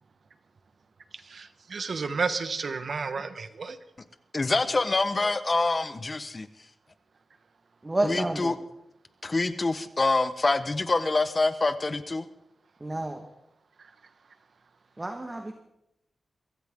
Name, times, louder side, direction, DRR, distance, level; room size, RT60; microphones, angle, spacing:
voice 1, 1.3-3.8, right 4 dB, 65° right, 10 dB, 1.3 m, -31 dB
voice 2, 4.3-6.5 8.0-8.6 9.2-12.3, left 3 dB, 35° left, 11 dB, 1.1 m, -26 dB
voice 3, 7.8-8.5 12.8-13.3 15.0-15.5, right 1 dB, 25° right, 4 dB, 1.6 m, -30 dB
23.0 x 15.0 x 3.8 m, 0.82 s
wide cardioid pair, 80°, 0 cm